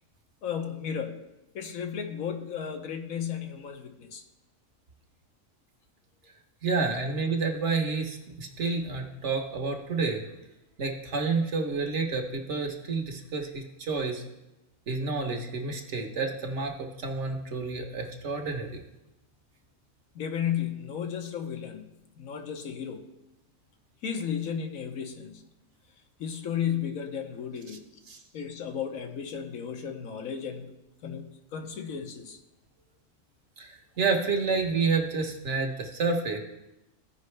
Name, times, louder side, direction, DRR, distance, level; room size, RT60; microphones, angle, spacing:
voice 1, 0.4-1.2 1.5-4.2 20.1-21.9 22.2-23.0 24.0-25.4 26.2-27.8 28.3-30.7 31.0-31.2 31.5-32.4, left 8 dB, 90° left, 5 dB, 1.3 m, -34 dB
voice 2, 6.6-10.2 10.8-14.2 14.9-18.8 28.1-28.2 33.6-36.4, right 4 dB, 60° right, 3 dB, 1.3 m, -29 dB
15.5 x 5.2 x 3.2 m, 0.94 s
omnidirectional pair, 1.4 m